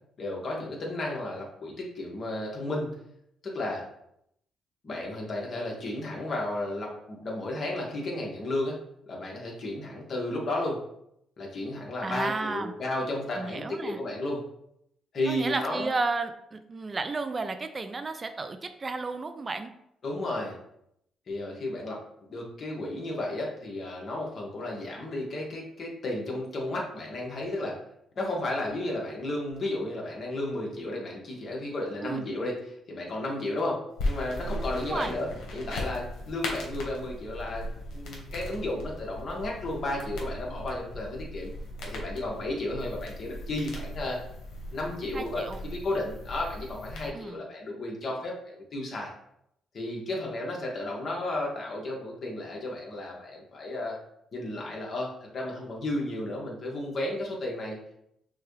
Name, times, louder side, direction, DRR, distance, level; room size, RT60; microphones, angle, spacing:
voice 1, 0.2-2.9 3.4-3.8 4.8-8.8 9.1-10.8 11.4-14.4 15.1-15.9 20.0-20.6 21.3-22.0 22.3-27.8 28.2-41.5 41.8-44.2 44.7-49.1 49.7-54.0 54.3-57.8, left 1 dB, 50° left, -2 dB, 1.3 m, -33 dB
voice 2, 12.0-12.7 13.4-14.0 15.3-19.7 32.0-32.3 34.8-35.2 45.1-45.6 47.1-47.4, right 3 dB, 30° right, 9 dB, 0.3 m, -33 dB
sound 1, 34.0-47.1, left 1 dB, 80° left, 1.2 m, -38 dB
6.0 x 2.3 x 3.2 m, 0.76 s
cardioid pair, 90°, 0 cm